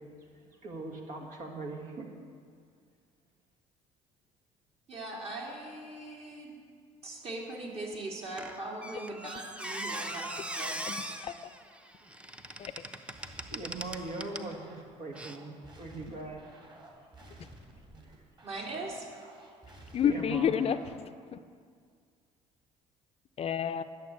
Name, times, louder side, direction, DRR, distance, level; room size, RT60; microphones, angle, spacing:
voice 1, 0.6-2.1 13.5-16.6 17.2-17.4 18.0-18.2 20.0-20.6, right 2 dB, 70° right, 1 dB, 2.0 m, -41 dB
voice 2, 4.9-6.5 7.0-10.8 18.4-19.1, right 2 dB, 50° right, -2 dB, 3.3 m, -40 dB
Squeak, 8.4-14.5 15.1-15.4, right 1 dB, 10° right, 0.8 m, -40 dB
voice 3, 10.9-11.3 12.6-12.7 19.9-20.9 21.3-21.4 23.4-23.8, left 8 dB, 45° left, 11 dB, 0.5 m, -29 dB
sound 1, 13.1-21.1, right 1 dB, 30° right, 3.0 m, -53 dB
11.5 x 6.8 x 8.3 m, 2.1 s
supercardioid pair, 80°, 14 cm